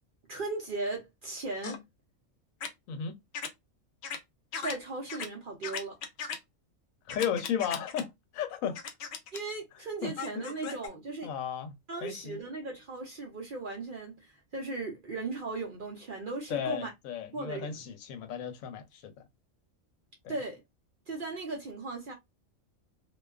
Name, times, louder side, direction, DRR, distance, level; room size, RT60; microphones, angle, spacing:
voice 1, 0.3-1.8 4.6-6.0 9.3-11.3 11.9-16.9 17.3-17.8 20.3-20.6 21.1-22.1, right 3 dB, 55° right, 0.6 m, -37 dB
sound 1, 1.6-1.8 2.6-2.7 3.3-3.5 4.0-4.2 4.5-4.7 5.1-5.3 5.6-6.4 7.1-8.0 8.8-9.4 10.2-10.9, left 6 dB, 65° left, 0.7 m, -37 dB
voice 2, 7.1-8.8 10.0-10.4 11.2-11.7 12.0-12.4 16.5-19.1 20.2-20.3, left 8 dB, 85° left, 1.0 m, -34 dB
2.4 x 2.2 x 2.3 m
omnidirectional pair, 1.4 m